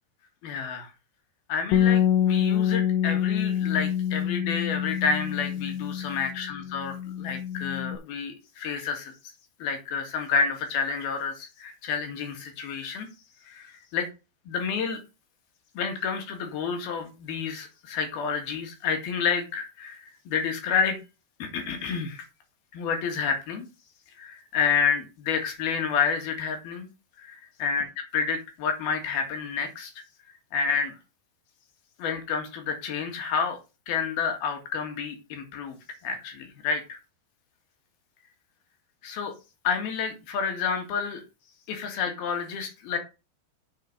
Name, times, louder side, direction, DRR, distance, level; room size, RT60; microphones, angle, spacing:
voice 1, 0.4-0.9 1.5-9.1 9.6-13.1 13.5-14.1 14.5-15.0 15.8-21.0 21.4-22.2 22.7-23.7 24.2-26.9 27.2-27.9 28.1-29.9 30.5-31.0 32.0-33.6 33.9-35.8 36.0-37.0 39.0-39.3 39.7-41.2 41.7-43.0, left 6 dB, 65° left, 4 dB, 3.6 m, -29 dB
Bass guitar, 1.7-8.0, left 9 dB, 80° left, 2.9 m, -26 dB
7.6 x 7.1 x 4.0 m, 0.28 s
omnidirectional pair, 5.1 m